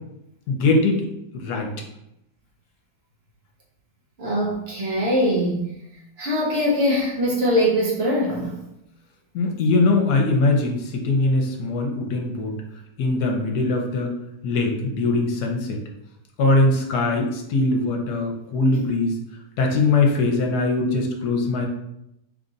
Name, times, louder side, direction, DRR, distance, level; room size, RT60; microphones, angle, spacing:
voice 1, 0.5-1.1 1.3-1.7 9.3-12.6 13.0-14.1 14.4-15.8 16.4-19.2 19.6-21.7, left 3 dB, 70° left, 2 dB, 1.2 m, -21 dB
voice 2, 4.2-5.7 6.2-8.6, equal, 55° right, -3 dB, 0.7 m, -22 dB
3.4 x 2.5 x 3.9 m, 0.82 s
omnidirectional pair, 1.9 m